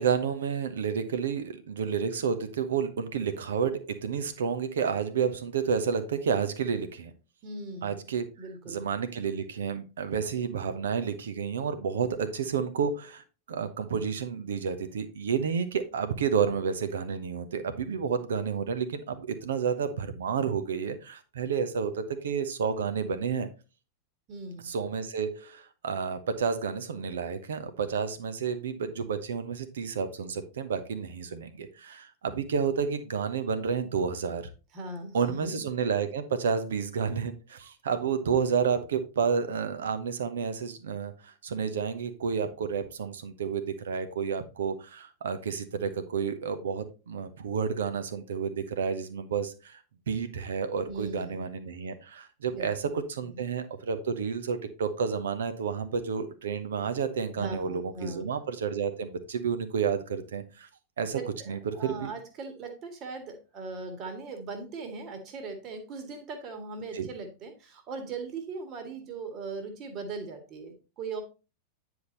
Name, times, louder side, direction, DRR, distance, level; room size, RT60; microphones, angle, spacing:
voice 1, 0.0-7.1 7.8-8.3 8.6-23.5 24.6-34.4 35.1-49.8 50.1-60.7 61.0-61.2 61.5-62.1 66.9-67.1, right 6 dB, 65° right, 11 dB, 1.1 m, -30 dB
voice 2, 7.4-8.0 8.4-8.8 24.3-24.7 34.7-35.6 50.9-51.4 52.5-52.9 53.3-53.4 57.4-58.3 61.1-71.2, right 3 dB, 35° right, 6 dB, 1.9 m, -39 dB
9.7 x 5.0 x 4.0 m, 0.32 s
figure-of-eight pair, 90°, 0 cm